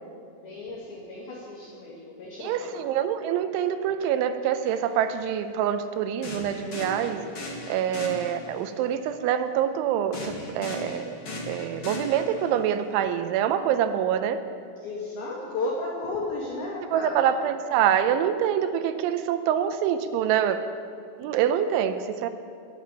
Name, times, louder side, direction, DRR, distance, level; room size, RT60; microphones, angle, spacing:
voice 1, 0.4-2.7 14.8-17.3, left 2 dB, 60° left, -3 dB, 3.2 m, -34 dB
voice 2, 2.4-7.3 7.7-11.1 11.5-14.4 16.9-20.6 21.2-22.3, right 9 dB, 85° right, 10 dB, 3.0 m, -25 dB
sound 1, 4.6-4.8 6.2-8.7 10.1-12.7, left 1 dB, 40° left, 2.1 m, -37 dB
20.5 x 7.3 x 8.8 m, 2.3 s
omnidirectional pair, 5.7 m